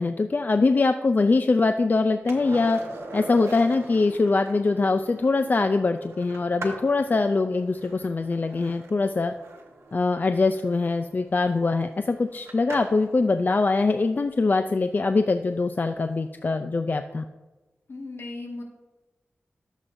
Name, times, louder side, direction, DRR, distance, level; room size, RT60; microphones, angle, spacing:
voice 1, 0.0-2.8 3.1-9.3 9.9-17.2, left 3 dB, 40° left, 8 dB, 0.4 m, -23 dB
Skateboard, 2.3-13.1 15.7-15.8, right 2 dB, 85° right, 1.4 m, -42 dB
voice 2, 17.9-18.6, left 2 dB, 65° left, 0 dB, 1.8 m, -36 dB
13.5 x 7.2 x 2.6 m, 1.2 s
wide cardioid pair, 70°, 5 cm